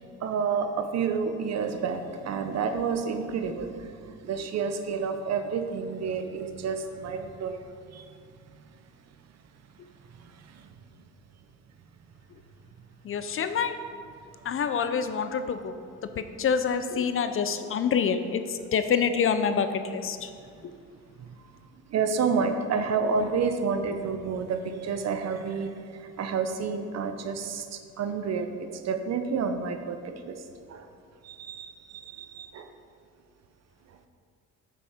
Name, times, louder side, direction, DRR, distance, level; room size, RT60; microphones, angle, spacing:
voice 1, 0.2-7.6 7.9-8.1 10.2-10.7 21.2-21.4 21.9-30.4 30.7-30.9 31.2-32.7, right 5 dB, 60° right, 8 dB, 0.7 m, -30 dB
voice 2, 13.0-13.8 14.4-15.7 16.2-20.3 20.6-20.7, left 6 dB, 45° left, 10 dB, 0.5 m, -27 dB
6.9 x 6.4 x 5.0 m, 2.3 s
cardioid pair, 90°, 30 cm